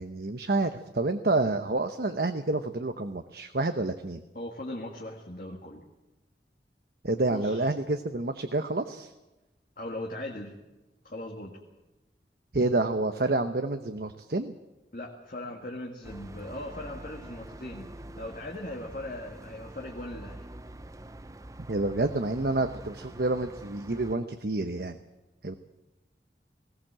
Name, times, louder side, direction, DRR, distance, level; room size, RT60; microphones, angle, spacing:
voice 1, 0.0-4.2 7.0-9.1 12.5-14.5 21.7-25.0 25.4-25.5, right 2 dB, 60° right, 8 dB, 0.9 m, -28 dB
voice 2, 4.3-5.8 7.3-7.6 9.8-10.6 11.0-11.6 14.9-20.4, left 1 dB, 50° left, 0 dB, 2.0 m, -39 dB
sound 1, 16.0-24.2, right 1 dB, 20° right, 0.6 m, -45 dB
19.5 x 17.5 x 7.6 m, 1.0 s
head